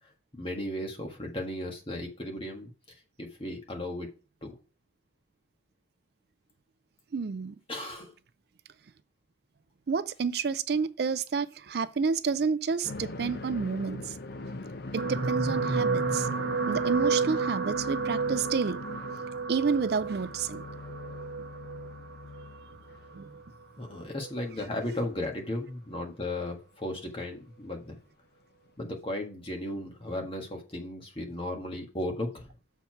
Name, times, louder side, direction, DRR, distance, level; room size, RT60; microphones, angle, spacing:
voice 1, 0.4-2.7 3.2-4.1 4.4-4.5 7.7-8.1 23.8-28.0 28.8-32.5, left 1 dB, 30° left, 1.6 m, -35 dB
voice 2, 7.1-7.5 9.9-14.1 14.9-16.3 16.7-18.8 19.5-20.6 23.1-23.3, right 5 dB, 55° right, 0.4 m, -30 dB
sound 1, 12.8-23.8 24.1-24.2 25.5-25.6 27.0-27.1 28.7-28.8, left 2 dB, 55° left, 0.7 m, -42 dB
sound 2, 15.0-23.4 24.2-24.4 24.7-24.8, right 4 dB, 75° right, 0.8 m, -31 dB
7.0 x 4.6 x 5.8 m
head